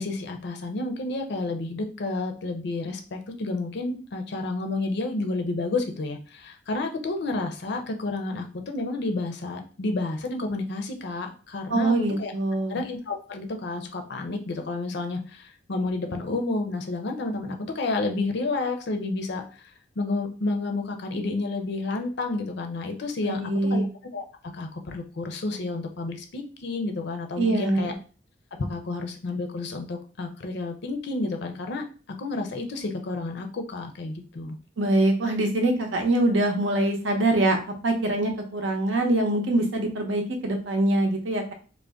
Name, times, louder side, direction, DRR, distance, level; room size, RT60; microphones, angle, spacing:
voice 1, 0.0-12.3 12.7-19.4 20.0-23.4 23.7-23.8 24.1-24.2 24.5-27.9 28.7-31.8 32.2-34.6, left 2 dB, 65° left, 5 dB, 0.5 m, -30 dB
voice 2, 11.7-12.8 23.2-23.8 27.4-27.8 34.8-37.6 37.8-41.5, right 2 dB, 85° right, 4 dB, 0.7 m, -24 dB
2.5 x 2.1 x 3.4 m, 0.38 s
head